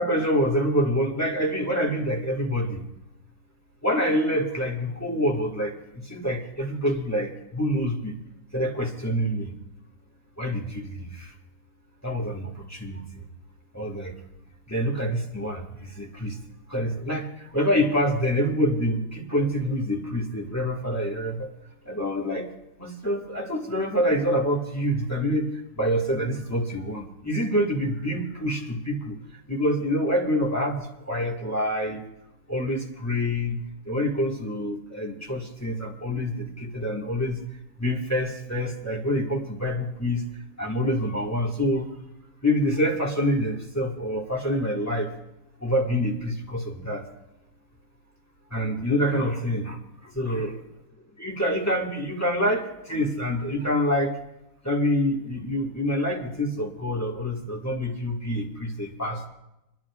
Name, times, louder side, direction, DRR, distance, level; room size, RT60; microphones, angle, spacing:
voice 1, 0.0-2.8 3.8-8.2 8.5-9.5 10.4-11.3 12.0-13.2 13.7-14.1 14.7-16.4 16.7-21.5 21.9-22.5 22.8-25.5 25.8-29.2 29.5-32.0 32.5-33.6 33.8-37.4 37.8-40.2 40.6-41.9 42.4-45.1 45.6-47.0 48.5-50.6 51.2-54.2 54.6-59.3, equal, 10° left, 0 dB, 1.7 m, -26 dB
30.0 x 10.5 x 2.4 m, 0.91 s
omnidirectional pair, 1.7 m